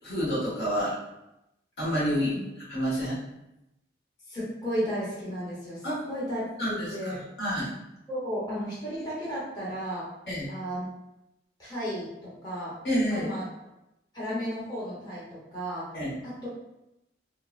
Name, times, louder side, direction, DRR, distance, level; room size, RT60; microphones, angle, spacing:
voice 1, 0.0-0.9 1.8-2.3 2.7-3.2 5.8-6.0 6.6-7.7 10.3-10.5 12.8-13.3 15.9-16.2, equal, 65° left, -7 dB, 1.1 m, -28 dB
voice 2, 4.3-6.4 6.7-7.2 8.1-10.1 10.5-10.9 11.6-12.8 13.1-13.4 14.1-15.9 16.2-16.5, equal, 25° left, -9 dB, 1.0 m, -34 dB
3.5 x 2.0 x 2.4 m, 0.88 s
head